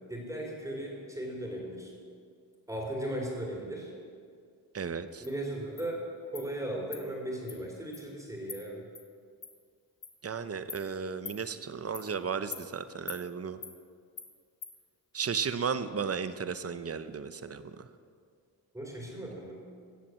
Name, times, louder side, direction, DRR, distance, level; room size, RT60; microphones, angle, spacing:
voice 1, 0.1-1.9 2.7-3.9 5.2-8.8 18.7-19.5, right 1 dB, 10° right, -2 dB, 3.1 m, -37 dB
voice 2, 4.7-5.2 10.2-13.6 15.1-17.9, right 6 dB, 40° right, 12 dB, 0.8 m, -34 dB
Insect, 5.2-5.3 5.8-5.9 6.3-6.5 6.9-7.0 7.5-7.6 7.9-8.0 8.5-8.6 8.9-9.0 9.4-9.5 10.0-10.1 10.7-10.8 11.2-11.4 11.9-12.1 12.5-12.6 13.1-13.2 13.6-13.7 14.2-14.3 14.6-14.7, left 6 dB, 55° left, 1.6 m, -42 dB
15.5 x 7.5 x 7.5 m, 2.2 s
wide cardioid pair, 105°, 38 cm